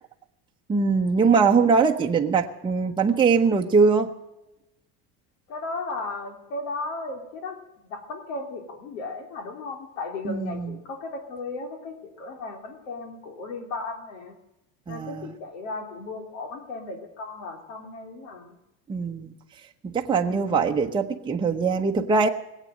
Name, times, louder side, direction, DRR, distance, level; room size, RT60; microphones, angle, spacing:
voice 1, 0.7-4.1 10.2-10.7 14.9-15.3 18.9-19.3 19.8-22.3, right 5 dB, 10° right, 2 dB, 0.9 m, -22 dB
voice 2, 5.5-7.6 7.8-14.3 14.9-18.5 20.2-20.6, left 3 dB, 85° left, 6 dB, 3.2 m, -35 dB
20.0 x 8.4 x 7.6 m, 0.93 s
supercardioid pair, 140°, 38 cm